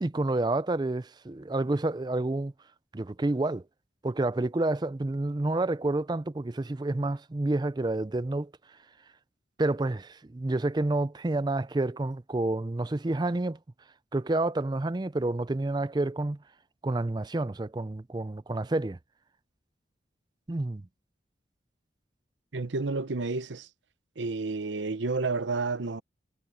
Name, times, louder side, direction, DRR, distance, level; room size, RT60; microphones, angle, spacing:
voice 1, 0.0-2.5 2.9-3.6 4.0-8.5 9.6-13.6 14.1-16.4 16.8-19.0 20.5-20.8, right 2 dB, 25° right, 0.4 m, -29 dB
voice 2, 22.5-23.7 24.2-26.0, right 3 dB, 85° right, 0.8 m, -30 dB
head